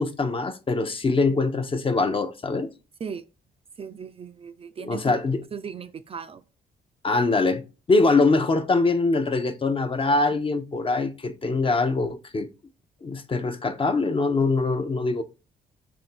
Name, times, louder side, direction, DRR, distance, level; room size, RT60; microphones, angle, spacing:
voice 1, 0.0-2.7 4.8-5.4 7.0-7.6 7.9-12.5 13.0-15.2, left 3 dB, 30° left, 0.6 m, -23 dB
voice 2, 3.8-5.2 5.5-6.4, right 6 dB, 35° right, 0.4 m, -37 dB
3.2 x 2.6 x 4.4 m
supercardioid pair, 60°, 17 cm